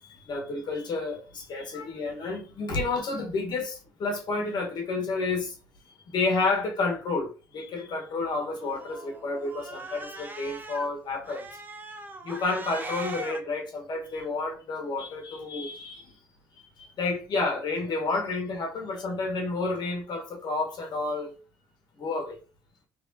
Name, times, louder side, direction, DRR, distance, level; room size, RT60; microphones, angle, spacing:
voice 1, 0.3-5.5 6.1-11.4 12.2-16.0 17.0-21.3 22.0-22.4, left 3 dB, 55° left, 1.3 m, -30 dB
Cat, 8.5-10.9 11.2-13.4, right 2 dB, 20° right, 0.9 m, -40 dB
3.5 x 3.5 x 2.7 m
supercardioid pair, 65°, 9 cm